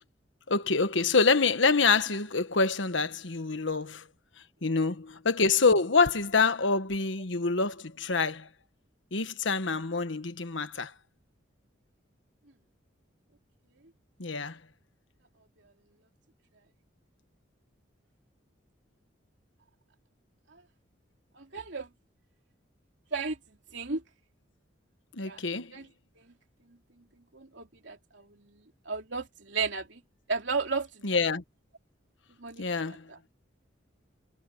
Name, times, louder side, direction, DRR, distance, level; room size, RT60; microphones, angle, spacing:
voice 1, 0.5-4.0 4.6-8.5 9.1-10.9 14.2-14.6 25.1-25.7 31.0-31.4 32.6-33.1, left 4 dB, 75° left, 1.4 m, -26 dB
voice 2, 21.4-21.9 23.1-23.4 23.7-24.0 25.2-25.4 25.7-25.9 26.2-26.3 27.3-30.0 30.3-31.2 32.4-33.2, right 4 dB, 70° right, 2.9 m, -34 dB
head